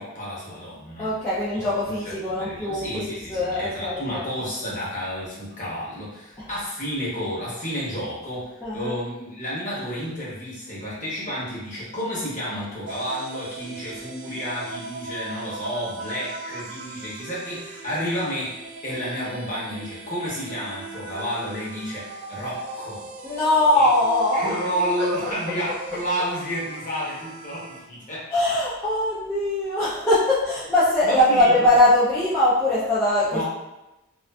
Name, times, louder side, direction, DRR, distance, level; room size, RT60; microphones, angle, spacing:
voice 1, 0.0-1.1 1.9-2.0 2.4-23.0 23.8-23.9 24.3-28.3 31.0-31.5 33.3-33.4, equal, 35° left, -7 dB, 0.9 m, -31 dB
voice 2, 1.0-4.2 6.4-6.5 8.6-8.9 23.2-24.6 25.0-25.3 28.3-33.4, left 1 dB, 10° left, -11 dB, 0.4 m, -21 dB
sound 1, 12.9-27.8, right 3 dB, 55° right, 0.3 m, -39 dB
2.4 x 2.4 x 2.2 m, 0.96 s
head